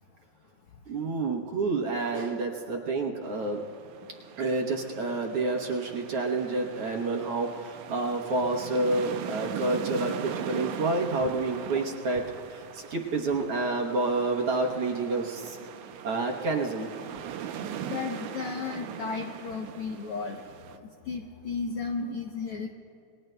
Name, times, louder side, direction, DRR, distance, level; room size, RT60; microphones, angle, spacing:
voice 1, 0.9-3.6 4.4-15.6 16.0-16.9, right 3 dB, 60° right, 0 dB, 1.8 m, -29 dB
sound 1, 3.2-20.8, right 8 dB, 90° right, 2.1 m, -40 dB
voice 2, 17.9-20.4 21.1-22.7, left 5 dB, 75° left, 3 dB, 1.3 m, -34 dB
28.5 x 21.5 x 2.2 m, 2.6 s
omnidirectional pair, 3.4 m